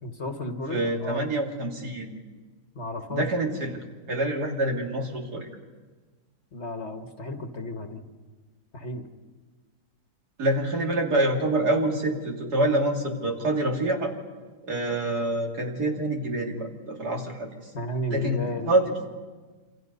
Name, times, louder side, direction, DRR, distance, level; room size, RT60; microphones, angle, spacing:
voice 1, 0.0-1.2 2.7-3.2 6.5-8.0 8.7-9.1 17.7-18.9, left 1 dB, 45° left, 5 dB, 1.7 m, -33 dB
voice 2, 0.7-2.1 3.1-5.5 10.4-14.1 14.6-17.7 18.1-19.1, right 1 dB, 75° right, 1 dB, 3.4 m, -26 dB
27.0 x 27.0 x 5.5 m, 1.4 s
omnidirectional pair, 1.7 m